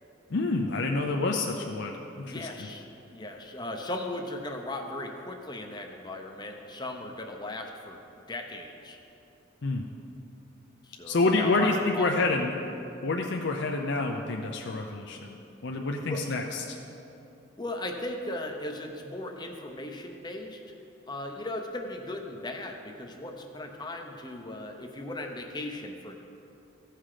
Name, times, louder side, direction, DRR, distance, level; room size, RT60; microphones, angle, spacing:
voice 1, 0.3-2.5 9.6-9.8 11.1-12.5 13.0-15.4 15.6-16.8, left 3 dB, 55° left, 1 dB, 0.6 m, -28 dB
voice 2, 2.2-2.9 3.1-8.0 8.3-9.0 10.8-12.1 16.1-16.4 17.6-20.6 21.1-26.2, left 1 dB, 20° left, 3 dB, 0.7 m, -37 dB
15.5 x 5.8 x 4.9 m, 2.8 s
head